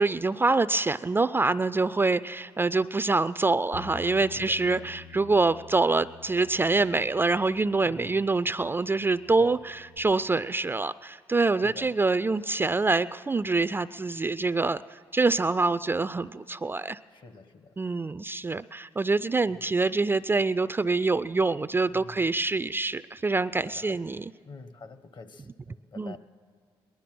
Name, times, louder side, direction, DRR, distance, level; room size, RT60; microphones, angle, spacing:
voice 1, 0.0-17.0 17.8-24.3 26.0-26.2, right 3 dB, 20° right, 14 dB, 0.3 m, -25 dB
Bass guitar, 3.7-10.0, left 6 dB, 65° left, 2.2 m, -49 dB
voice 2, 4.3-4.9 7.8-8.2 9.4-9.6 11.6-11.9 17.1-17.7 19.5-19.6 21.9-22.2 23.7-24.0 24.4-26.2, left 4 dB, 50° left, 11 dB, 1.1 m, -47 dB
19.5 x 11.5 x 6.0 m, 2.2 s
supercardioid pair, 60°, 10 cm